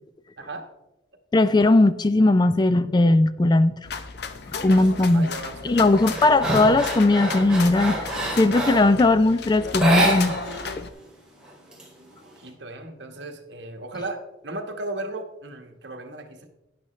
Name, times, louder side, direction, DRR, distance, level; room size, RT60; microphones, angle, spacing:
voice 1, 0.4-0.7 5.1-6.2 12.2-16.5, right 2 dB, 65° right, 5 dB, 1.3 m, -36 dB
voice 2, 1.3-3.7 4.6-5.3 5.6-8.1 8.4-10.3, left 2 dB, 25° left, 14 dB, 0.3 m, -18 dB
sound 1, 3.8-10.9, left 5 dB, 60° left, 0.7 m, -35 dB
sound 2, 4.8-5.1 5.5-9.0 9.7-10.7 10.9-11.0 11.4-12.4, right 1 dB, 5° right, 2.6 m, -27 dB
12.0 x 10.0 x 3.1 m, 0.94 s
head